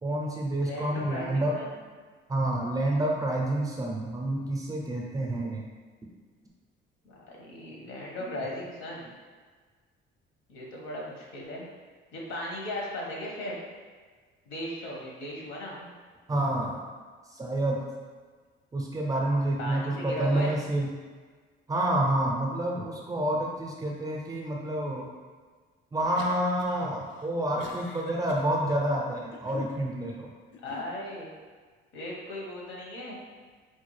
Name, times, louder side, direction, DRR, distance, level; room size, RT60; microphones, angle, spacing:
voice 1, 0.0-1.5 2.3-5.6 8.3-8.4 16.3-16.8 17.3-17.8 18.7-20.9 21.7-25.1 25.9-30.3, right 1 dB, 15° right, -2 dB, 0.5 m, -28 dB
voice 2, 0.6-1.7 7.0-9.1 10.5-11.7 12.1-13.6 14.5-15.9 19.6-20.5 30.6-31.3 31.9-33.1, left 1 dB, 80° left, -3 dB, 1.1 m, -37 dB
sound 1, 26.0-26.8 27.1-28.5 29.1-29.8 30.5-30.9, left 5 dB, 65° left, 0.4 m, -44 dB
4.4 x 2.3 x 3.1 m, 1.5 s
cardioid pair, 140°, 21 cm